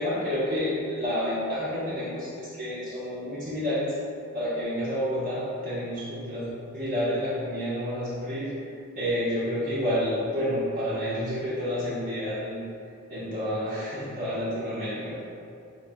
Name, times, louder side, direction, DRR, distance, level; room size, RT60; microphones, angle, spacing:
voice 1, 0.0-3.9 4.3-6.5 6.7-8.5 9.0-12.6 13.1-15.2, equal, 40° right, -10 dB, 0.8 m, -29 dB
3.6 x 3.0 x 4.3 m, 2.3 s
head